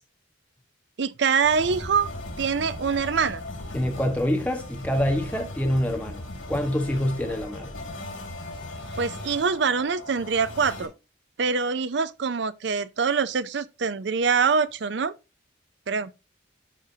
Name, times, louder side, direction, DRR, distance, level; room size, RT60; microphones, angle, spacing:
voice 1, 1.0-2.1 2.4-3.4 9.0-10.9 11.4-15.1 15.9-16.1, right 5 dB, 60° right, 0.5 m, -24 dB
sound 1, 1.4-10.9, left 1 dB, 90° left, 2.7 m, -38 dB
voice 2, 3.7-7.7, equal, 5° left, 1.4 m, -26 dB
11.5 x 5.0 x 2.8 m
head